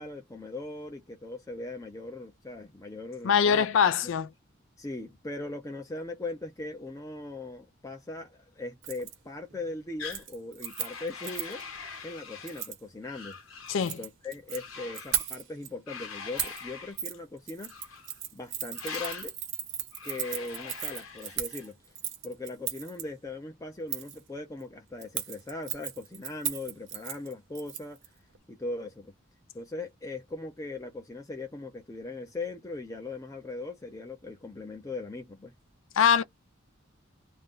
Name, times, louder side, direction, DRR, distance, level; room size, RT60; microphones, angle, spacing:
voice 1, 0.0-3.7 4.8-13.4 13.8-17.9 18.3-19.3 20.0-21.8 22.2-28.0 28.5-29.1 29.5-35.5, left 2 dB, 15° left, 0.6 m, -39 dB
voice 2, 3.2-4.3 13.7-14.0 36.0-36.2, left 7 dB, 65° left, 0.4 m, -23 dB
Keys jangling, 8.8-9.1 9.5-9.8 10.0-11.6 12.5-12.8 13.7-14.6 14.9-15.7 16.4-16.6 17.0-17.1 17.5-23.0 23.9-24.2 25.0-28.1 28.3-28.4, right 10 dB, 65° right, 0.8 m, -36 dB
sound 1, 10.0-10.2 10.6-12.7 13.0-13.8 14.5-15.3 15.9-17.0 17.6-18.2 18.7-19.3 19.9-21.7, left 5 dB, 90° left, 1.0 m, -43 dB
2.5 x 2.2 x 3.6 m
head